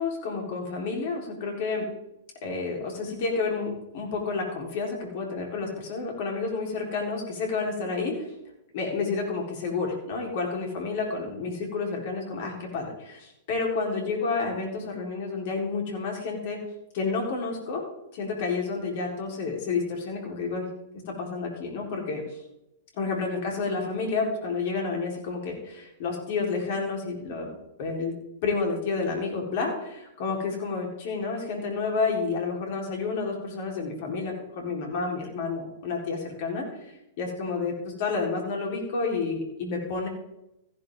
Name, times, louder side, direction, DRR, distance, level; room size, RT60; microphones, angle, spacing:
voice 1, 0.0-1.9 2.4-8.3 8.7-16.6 16.9-17.8 18.1-20.7 21.1-22.2 23.0-27.5 27.8-28.1 28.4-36.7 37.2-40.1, left 4 dB, 50° left, 1 dB, 4.0 m, -30 dB
15.0 x 11.0 x 3.7 m, 0.87 s
figure-of-eight pair, 100°, 0 cm